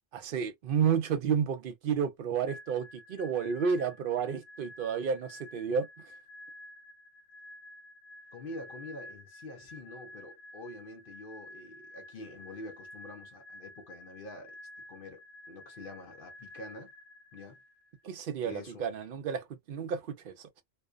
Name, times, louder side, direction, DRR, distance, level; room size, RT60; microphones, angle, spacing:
voice 1, 0.1-5.9 18.0-20.6, right 7 dB, 60° right, 0.7 m, -31 dB
sound 1, 2.5-18.1, left 1 dB, 85° left, 0.9 m, -51 dB
voice 2, 8.3-14.5 14.9-16.9 17.3-17.6 18.4-18.9, left 2 dB, 55° left, 0.8 m, -46 dB
2.5 x 2.2 x 2.3 m
omnidirectional pair, 1.2 m